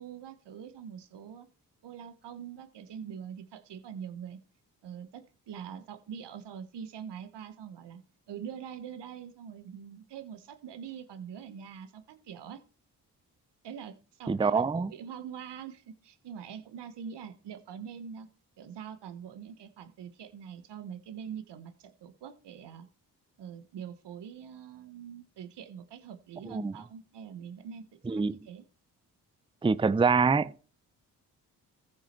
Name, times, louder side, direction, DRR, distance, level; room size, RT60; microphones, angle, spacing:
voice 1, 0.0-1.5 1.8-4.4 4.8-8.0 8.3-12.6 13.6-18.3 18.6-22.9 23.4-28.6, right 8 dB, 75° right, 1.3 m, -44 dB
voice 2, 14.3-14.9 26.5-26.7 28.1-28.3 29.6-30.5, right 5 dB, 15° right, 0.5 m, -25 dB
14.5 x 6.5 x 4.5 m
supercardioid pair, 45°, 42 cm